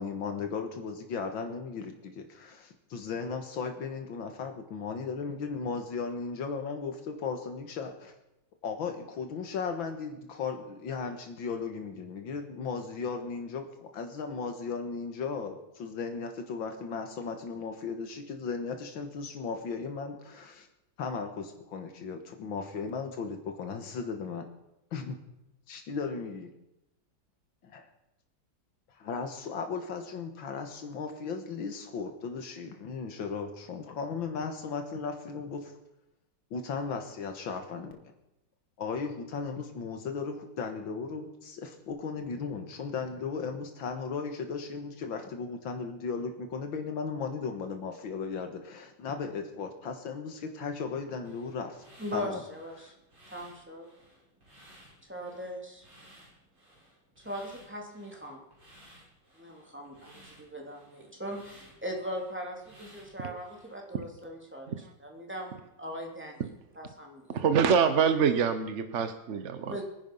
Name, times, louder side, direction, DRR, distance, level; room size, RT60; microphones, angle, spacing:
voice 1, 0.0-8.1 8.6-20.7 21.0-24.5 24.9-25.2 25.7-26.5 27.6-27.9 29.0-35.7 36.5-38.0 38.8-51.8 52.1-52.4 52.8-52.9, left 5 dB, 80° left, 5 dB, 2.1 m, -36 dB
sound 1, 51.2-63.7, right 1 dB, 70° right, 8.3 m, -57 dB
voice 2, 52.0-52.9 53.3-53.9 55.0-55.9 57.2-58.4 59.3-66.5 66.7-67.4 69.6-69.8, equal, 5° right, 0 dB, 3.0 m, -40 dB
voice 3, 67.3-69.8, right 6 dB, 50° right, 9 dB, 0.9 m, -25 dB
22.5 x 10.5 x 5.5 m, 0.89 s
omnidirectional pair, 2.1 m